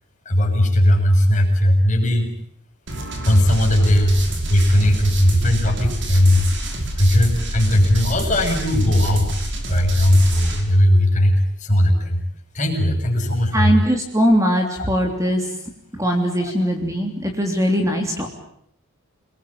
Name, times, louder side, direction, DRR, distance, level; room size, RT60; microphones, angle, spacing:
voice 1, 0.2-2.3 3.2-4.2 4.5-6.5 7.0-9.3 9.7-12.2 12.5-13.7 14.8-14.9 16.4-16.5, left 1 dB, 35° left, 2 dB, 6.8 m, -17 dB
sound 1, 2.9-10.6, right 1 dB, 55° right, 5.8 m, -27 dB
voice 2, 13.5-15.5 15.9-18.3, equal, 15° right, 3 dB, 3.3 m, -20 dB
29.0 x 21.5 x 8.8 m, 0.70 s
head